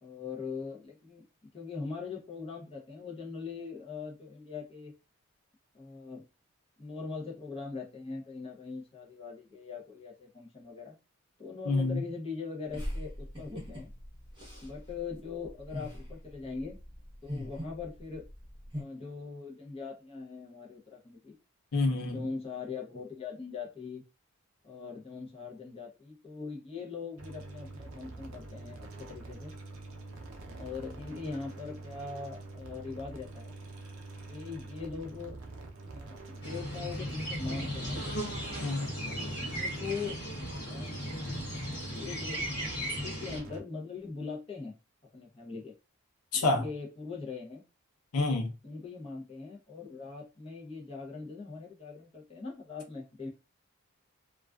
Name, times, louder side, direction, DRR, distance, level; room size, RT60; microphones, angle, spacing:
voice 1, 0.0-1.3 1.5-4.9 5.7-6.3 6.8-10.9 11.4-13.9 14.6-16.8 17.2-18.2 18.7-21.4 22.0-24.0 24.6-29.5 30.5-33.5 34.3-35.4 35.9-38.1 39.1-40.2 40.7-40.9 41.2-41.4 41.9-42.4 43.0-44.7 45.1-45.7 46.3-47.6 48.3-53.3, left 4 dB, 25° left, 0.6 m, -41 dB
voice 2, 11.7-12.0 21.7-22.2 38.6-38.9 46.3-46.6 48.1-48.5, left 2 dB, 85° left, 0.6 m, -28 dB
sound 1, 12.7-18.8, equal, 20° right, 0.9 m, -41 dB
sound 2, 27.2-43.6, right 3 dB, 75° right, 0.5 m, -45 dB
sound 3, 36.4-43.4, equal, 50° left, 0.9 m, -36 dB
2.3 x 2.3 x 2.2 m
head